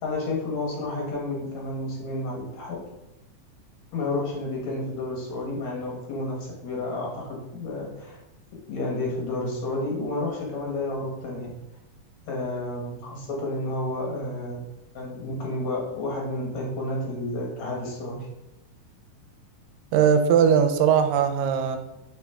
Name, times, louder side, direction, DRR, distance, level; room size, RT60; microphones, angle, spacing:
voice 1, 0.0-2.8 3.9-8.2 8.7-11.5 12.3-14.6 14.9-18.3, left 2 dB, 65° left, -2 dB, 2.2 m, -31 dB
voice 2, 19.9-21.8, right 7 dB, 85° right, 7 dB, 2.2 m, -19 dB
6.0 x 5.0 x 3.5 m, 0.96 s
omnidirectional pair, 3.8 m